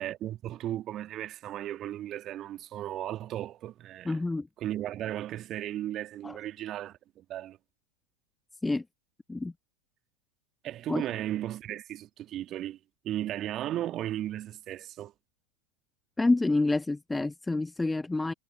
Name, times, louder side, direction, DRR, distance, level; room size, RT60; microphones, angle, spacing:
voice 1, 0.0-4.2 4.6-7.6 10.6-12.8 13.0-15.1, right 13 dB, 30° right, 2.0 m, -35 dB
voice 2, 4.0-4.5 6.2-6.4 8.6-8.8 9.3-9.5 10.9-11.0 16.2-18.3, left 2 dB, 10° left, 1.2 m, -28 dB
figure-of-eight pair, 90°, 0 cm